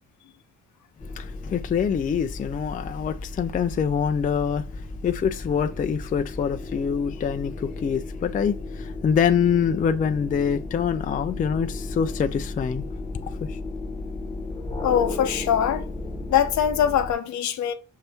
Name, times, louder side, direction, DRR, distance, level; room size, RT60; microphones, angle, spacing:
sound 1, 1.0-17.1, left 2 dB, 10° left, 1.0 m, -35 dB
voice 1, 1.1-12.9 13.5-13.6, left 7 dB, 30° left, 0.4 m, -25 dB
voice 2, 14.8-15.9 16.3-17.7, left 9 dB, 70° left, 0.8 m, -22 dB
5.6 x 2.7 x 3.4 m
cardioid pair, 90°, 30 cm